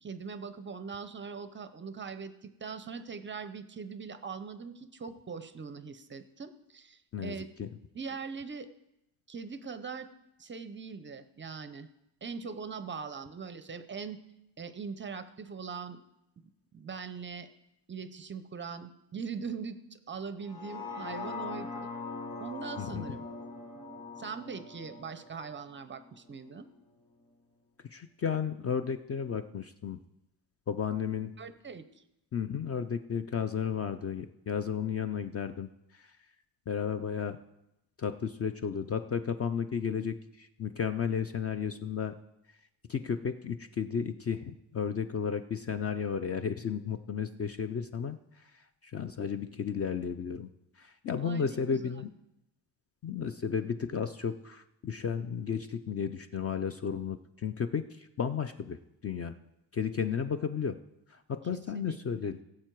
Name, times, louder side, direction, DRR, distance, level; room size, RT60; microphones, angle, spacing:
voice 1, 0.0-7.5 7.9-8.7 9.3-10.1 10.4-11.9 12.2-14.2 14.6-16.0 16.7-17.5 17.9-21.9 22.4-23.2 24.2-26.7 31.4-31.8 51.2-51.9 61.5-62.0, right 5 dB, 25° right, 12 dB, 0.5 m, -41 dB
voice 2, 7.1-7.7 22.8-23.1 27.9-30.0 30.7-31.3 32.3-35.7 35.9-36.1 36.7-37.4 38.0-42.1 42.9-48.2 48.8-50.5 50.8-52.1 53.0-59.4 59.7-60.8 61.1-62.4, left 7 dB, 35° left, 10 dB, 0.4 m, -33 dB
sound 1, 20.4-26.6 27.0-27.1, left 3 dB, 15° left, 1.8 m, -42 dB
16.5 x 7.5 x 4.5 m, 0.87 s
cardioid pair, 145°, 46 cm